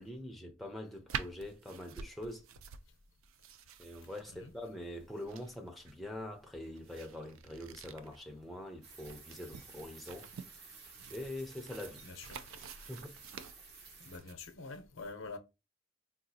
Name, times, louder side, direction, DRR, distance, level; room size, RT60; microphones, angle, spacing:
voice 1, 0.0-2.5 3.8-10.3 11.1-12.0 12.9-13.2, left 1 dB, ahead, 0.4 m, -44 dB
sound 1, 1.1-14.4, right 7 dB, 90° right, 0.4 m, -48 dB
sound 2, 8.8-14.2, right 4 dB, 55° right, 0.9 m, -54 dB
voice 2, 12.0-12.8 14.0-15.4, left 3 dB, 90° left, 0.7 m, -47 dB
3.9 x 2.4 x 2.7 m
head